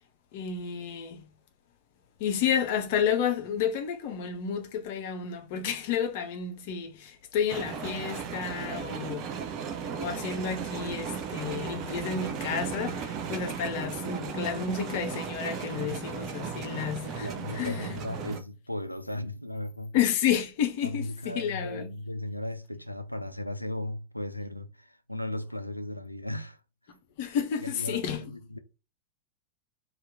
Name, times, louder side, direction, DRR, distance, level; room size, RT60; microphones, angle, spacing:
voice 1, 0.3-1.2 2.2-9.3 9.9-17.9 19.9-21.9 27.2-28.2, left 7 dB, 50° left, 0.6 m, -31 dB
sound 1, 7.5-18.4, right 6 dB, 35° right, 0.5 m, -36 dB
voice 2, 17.0-20.0 20.8-26.6 27.3-28.6, left 1 dB, 90° left, 0.3 m, -36 dB
2.8 x 2.4 x 3.4 m
figure-of-eight pair, 90°, 0 cm